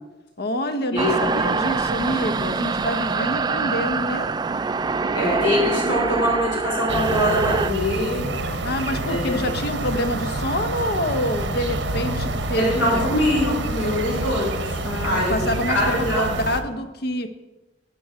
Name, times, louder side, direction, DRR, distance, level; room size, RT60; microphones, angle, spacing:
voice 1, 0.4-4.3 8.6-13.1 14.8-17.3, left 1 dB, 60° left, 9 dB, 0.9 m, -27 dB
sound 1, 1.0-7.7, right 4 dB, 25° right, 0.3 m, -24 dB
voice 2, 5.1-8.3 9.1-9.4 12.6-15.4 15.7-16.3, left 1 dB, 90° left, -3 dB, 4.6 m, -23 dB
sound 2, 6.9-16.6, right 2 dB, 80° right, 1.0 m, -27 dB
11.0 x 9.2 x 5.0 m, 1.1 s
head